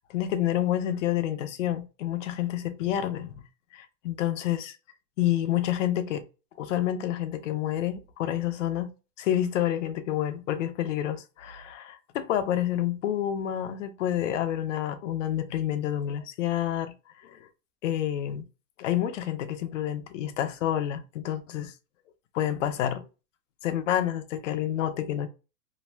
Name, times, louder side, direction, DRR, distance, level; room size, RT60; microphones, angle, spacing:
voice 1, 0.1-3.4 3.7-4.8 5.2-6.2 6.6-8.9 9.2-16.9 17.2-17.4 17.8-18.4 18.8-21.7 22.3-23.0 23.6-25.3, left 11 dB, 50° left, 0.5 m, -28 dB
2.6 x 2.1 x 3.1 m
supercardioid pair, 170°, 48 cm